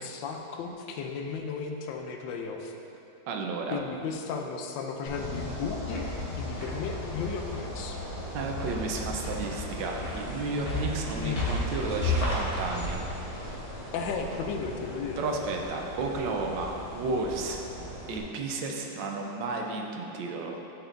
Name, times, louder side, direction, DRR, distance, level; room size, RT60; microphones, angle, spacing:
voice 1, 0.0-2.7 3.7-6.0 6.4-8.0 11.2-11.4 13.9-15.2, left 5 dB, 80° left, 3 dB, 1.3 m, -35 dB
voice 2, 3.3-3.8 8.3-13.0 15.2-17.6 18.1-20.6, right 3 dB, 80° right, 1 dB, 1.3 m, -32 dB
sound 1, 5.0-18.2, left 1 dB, 25° left, 0.8 m, -34 dB
11.0 x 4.4 x 2.6 m, 2.8 s
omnidirectional pair, 2.1 m